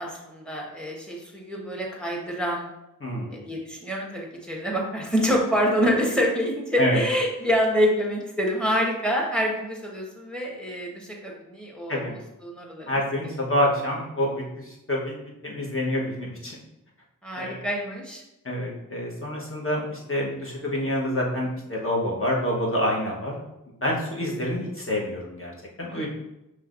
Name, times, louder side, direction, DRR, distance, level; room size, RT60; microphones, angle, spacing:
voice 1, 0.0-2.7 3.3-12.0 12.4-12.9 13.2-13.3 17.2-18.2 25.9-26.1, equal, 5° left, -1 dB, 1.2 m, -26 dB
voice 2, 3.0-3.4 6.8-7.0 11.9-12.1 12.9-16.6 17.4-17.6 18.4-23.4 23.8-26.1, left 1 dB, 40° left, -3 dB, 1.2 m, -27 dB
5.5 x 3.3 x 2.5 m, 0.90 s
wide cardioid pair, 55°, 34 cm